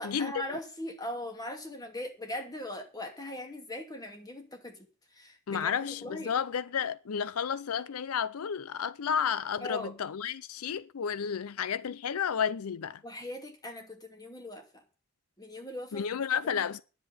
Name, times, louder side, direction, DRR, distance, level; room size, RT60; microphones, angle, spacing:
voice 1, 0.0-4.8 5.1-6.3 9.6-9.9 13.0-14.8 15.4-16.1 16.4-16.6, left 1 dB, 20° left, 2.4 m, -40 dB
voice 2, 5.5-13.0 15.9-16.8, left 7 dB, 80° left, 0.5 m, -32 dB
10.0 x 7.5 x 8.8 m
head